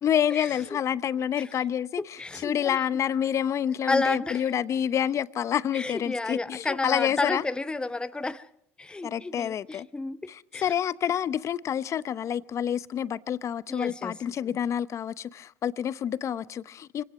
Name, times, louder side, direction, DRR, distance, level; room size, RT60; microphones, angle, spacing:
voice 1, 0.0-7.4 9.0-9.9 10.3-17.0, left 9 dB, 45° left, 0.8 m, -28 dB
voice 2, 2.0-2.8 3.9-4.4 5.7-8.5 8.8-10.2 10.5-10.7 13.7-14.1, left 3 dB, 15° left, 0.9 m, -31 dB
24.5 x 18.0 x 6.1 m
hypercardioid pair, 75°, 7 cm